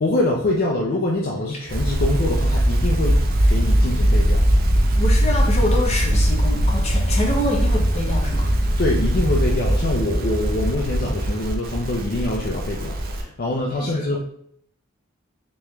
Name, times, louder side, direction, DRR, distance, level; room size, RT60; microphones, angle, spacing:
voice 1, 0.0-3.2 3.5-4.4 8.8-14.2, left 1 dB, 50° left, -2 dB, 0.5 m, -24 dB
sound 1, 1.7-13.2, equal, 50° right, 0.6 m, -20 dB
voice 2, 5.0-8.5 13.8-14.1, left 1 dB, 35° left, -1 dB, 0.9 m, -26 dB
3.4 x 3.0 x 3.2 m, 0.69 s
head